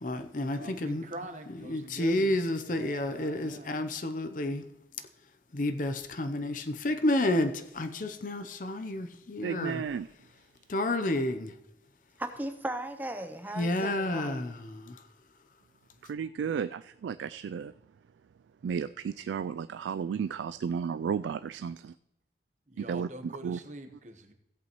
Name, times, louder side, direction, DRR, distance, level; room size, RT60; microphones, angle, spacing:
voice 1, 0.0-1.0 1.7-4.6 5.5-9.8 10.7-11.5 13.5-15.0, left 1 dB, 45° left, 0.6 m, -30 dB
voice 2, 0.5-2.3 2.6-3.8 22.7-24.3, right 1 dB, 40° right, 1.1 m, -44 dB
voice 3, 9.4-10.1 16.1-17.7 18.6-21.9 22.8-23.1 23.4-23.6, right 7 dB, 85° right, 0.3 m, -33 dB
voice 4, 12.2-14.5, right 1 dB, 10° right, 0.6 m, -37 dB
16.0 x 8.3 x 3.0 m
head